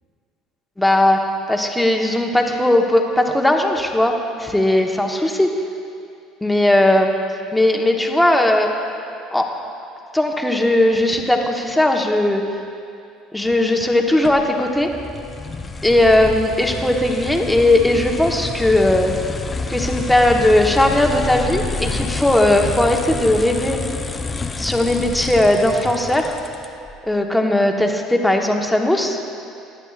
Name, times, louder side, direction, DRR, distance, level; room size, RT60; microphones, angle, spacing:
voice 1, 0.8-1.2 1.5-4.1 4.4-5.5 6.4-7.1 7.5-8.7 9.3-9.5 10.1-12.4 13.3-14.9 15.8-19.1 19.7-23.8 24.6-26.3 27.0-29.2, left 1 dB, 5° left, 2 dB, 1.2 m, -17 dB
sound 1, 14.2-26.9, left 3 dB, 25° left, 0.6 m, -28 dB
16.5 x 10.5 x 2.5 m, 2.5 s
hypercardioid pair, 75°, 0 cm